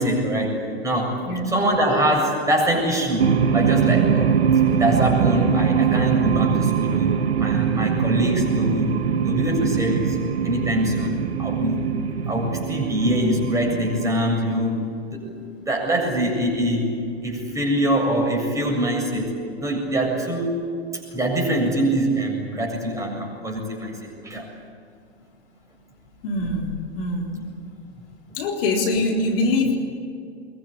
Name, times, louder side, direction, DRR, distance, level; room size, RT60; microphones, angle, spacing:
voice 1, 0.0-1.2 1.5-4.3 4.8-10.2 10.4-11.9 12.3-15.3 15.6-16.9 17.2-20.7 21.1-24.5, right 1 dB, 10° right, 0 dB, 7.5 m, -24 dB
voice 2, 1.2-1.6 26.2-27.6 28.4-29.8, left 2 dB, 60° left, 2 dB, 4.1 m, -24 dB
sound 1, 3.2-14.1, right 7 dB, 75° right, 1.7 m, -22 dB
24.5 x 22.0 x 9.9 m, 2.4 s
hypercardioid pair, 105°, 32 cm